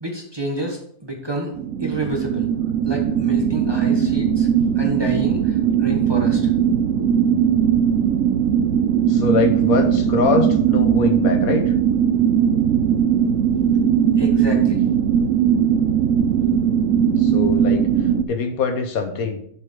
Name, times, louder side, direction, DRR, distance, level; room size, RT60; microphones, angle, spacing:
voice 1, 0.0-1.5 1.8-2.5 2.8-4.5 4.7-6.5 14.2-14.9, right 1 dB, 20° right, 0 dB, 1.4 m, -29 dB
sound 1, 1.6-18.2, right 8 dB, 70° right, 1.0 m, -19 dB
voice 2, 9.1-11.7 17.2-17.9 18.3-19.4, left 4 dB, 75° left, 6 dB, 1.4 m, -23 dB
7.3 x 5.0 x 6.6 m, 0.66 s
omnidirectional pair, 1.5 m